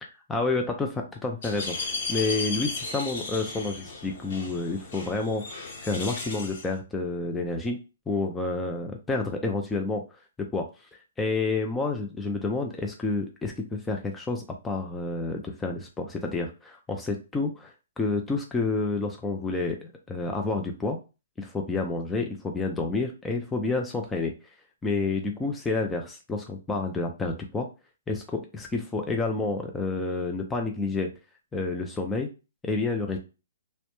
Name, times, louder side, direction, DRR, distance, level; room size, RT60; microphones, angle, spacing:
voice 1, 0.3-10.0 10.4-10.7 11.2-19.8 20.1-21.0 21.4-24.3 24.8-27.7 28.1-31.1 31.5-32.3 32.6-33.2, left 3 dB, 10° left, 2 dB, 0.4 m, -29 dB
sound 1, 1.4-6.7, left 3 dB, 55° left, 0.9 m, -35 dB
2.1 x 2.1 x 2.9 m, 0.30 s
hypercardioid pair, 140°, 0 cm